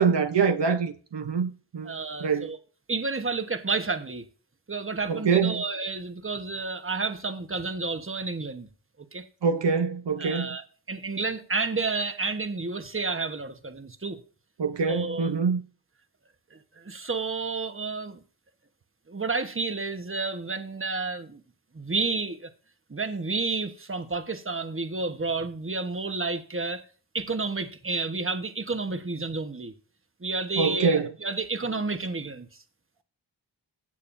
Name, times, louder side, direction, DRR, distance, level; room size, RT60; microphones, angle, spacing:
voice 1, 0.0-1.9 2.2-2.5 5.1-5.6 9.4-10.6 14.6-15.6 30.6-31.1, right 5 dB, 75° right, 0.8 m, -24 dB
voice 2, 1.8-2.6 2.9-4.2 4.7-8.7 9.1-9.3 10.2-14.2 14.8-15.3 16.5-18.2 19.1-21.4 21.7-22.5 22.9-26.8 27.1-29.7 30.2-32.5, right 3 dB, 30° right, 1.2 m, -30 dB
16.0 x 6.5 x 2.6 m
wide cardioid pair, 50°, 43 cm